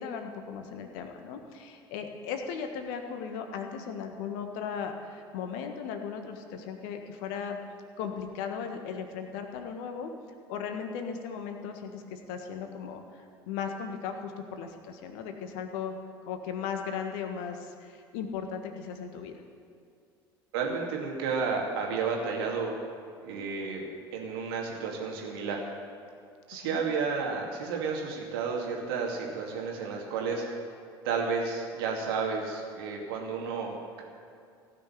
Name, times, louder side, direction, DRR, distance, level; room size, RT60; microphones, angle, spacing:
voice 1, 0.0-7.6 8.0-10.1 10.5-15.9 16.2-19.3 26.6-26.8, left 6 dB, 65° left, 5 dB, 1.5 m, -37 dB
voice 2, 20.5-22.8 23.2-23.8 24.1-25.6 26.5-30.4 31.0-34.0, right 5 dB, 70° right, 0 dB, 2.5 m, -32 dB
16.5 x 6.4 x 9.6 m, 2.4 s
figure-of-eight pair, 65°, 13 cm